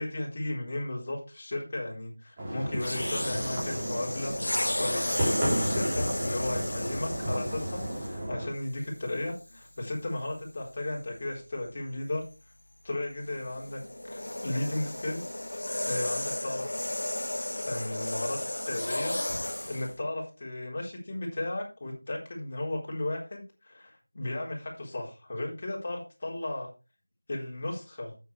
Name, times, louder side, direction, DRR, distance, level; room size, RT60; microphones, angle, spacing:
voice 1, 0.0-4.3 4.6-12.2 12.8-15.4 15.9-16.6 17.7-18.4 18.7-19.2 19.7-26.7 27.3-28.1, left 1 dB, 30° left, -2 dB, 4.0 m, -35 dB
sound 1, 2.4-8.5, right 1 dB, 15° right, 3.8 m, -33 dB
sound 2, 2.7-8.3 9.1-9.3 13.2-19.9, left 1 dB, 85° left, 1.5 m, -34 dB
10.0 x 8.7 x 3.4 m, 0.30 s
figure-of-eight pair, 175°, 0 cm